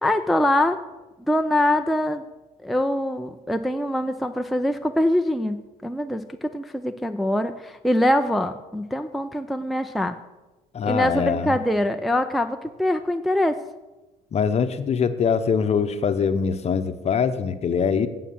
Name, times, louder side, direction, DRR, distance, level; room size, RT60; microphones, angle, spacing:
voice 1, 0.0-0.8 1.3-2.2 2.6-5.6 5.8-10.2 10.8-13.6, left 1 dB, ahead, 6 dB, 0.5 m, -23 dB
voice 2, 10.7-11.6 14.3-18.1, left 6 dB, 40° left, 10 dB, 0.9 m, -23 dB
9.1 x 7.4 x 7.4 m, 1.1 s
cardioid pair, 110°, 17 cm